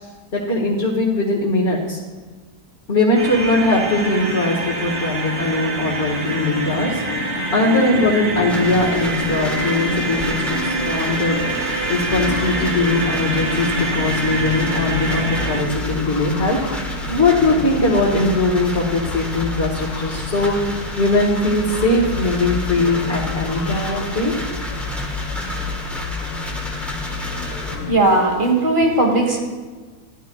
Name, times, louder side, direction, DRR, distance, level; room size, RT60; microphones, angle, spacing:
voice 1, 0.3-2.0 2.9-24.3, left 2 dB, 45° left, -6 dB, 1.8 m, -20 dB
sound 1, 3.2-15.6, right 1 dB, 85° right, 2.7 m, -25 dB
sound 2, 8.5-27.8, right 1 dB, ahead, 1.1 m, -31 dB
sound 3, 12.1-28.0, left 7 dB, 90° left, 1.3 m, -30 dB
voice 2, 27.6-29.4, right 2 dB, 35° right, 1 dB, 1.7 m, -18 dB
15.0 x 11.5 x 2.3 m, 1.4 s
omnidirectional pair, 1.6 m